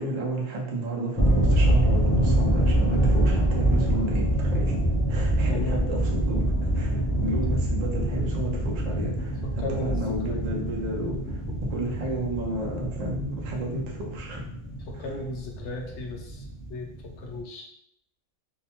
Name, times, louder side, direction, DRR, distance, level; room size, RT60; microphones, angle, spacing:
voice 1, 0.0-4.8 5.1-6.4 6.7-11.4 11.7-14.4 14.9-15.1, right 1 dB, 90° right, -2 dB, 0.3 m, -31 dB
sound 1, 1.2-17.4, right 1 dB, 30° left, 0.4 m, -25 dB
voice 2, 5.5-5.9 9.6-10.4 11.3-11.6 11.8-11.9 14.9-16.4 16.7-16.9 17.2-17.7, left 2 dB, 65° left, 1 dB, 0.8 m, -35 dB
2.7 x 2.1 x 2.8 m, 0.74 s
omnidirectional pair, 1.5 m